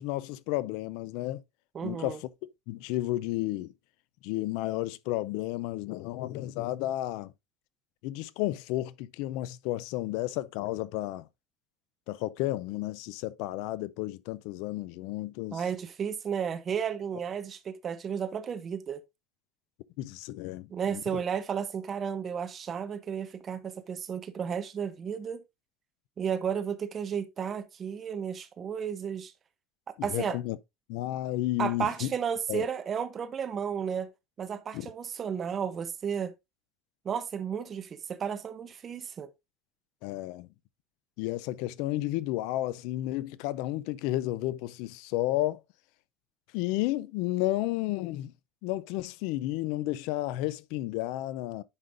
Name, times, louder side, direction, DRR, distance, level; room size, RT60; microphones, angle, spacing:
voice 1, 0.0-1.4 1.8-2.2 2.7-3.7 4.2-7.3 8.0-11.3 12.1-15.6 20.0-21.2 30.0-30.6 30.9-32.1 32.5-32.6 34.7-34.9 40.0-40.5 41.2-45.6 46.5-48.3 48.6-51.6, left 16 dB, 65° left, 0.4 m, -32 dB
voice 2, 1.7-2.2 15.5-19.0 20.7-25.4 26.2-29.3 30.0-30.4 31.6-34.1 34.4-36.3 37.0-39.3, right 7 dB, 25° right, 0.7 m, -33 dB
9.6 x 5.1 x 2.5 m
cardioid pair, 165°, 0 cm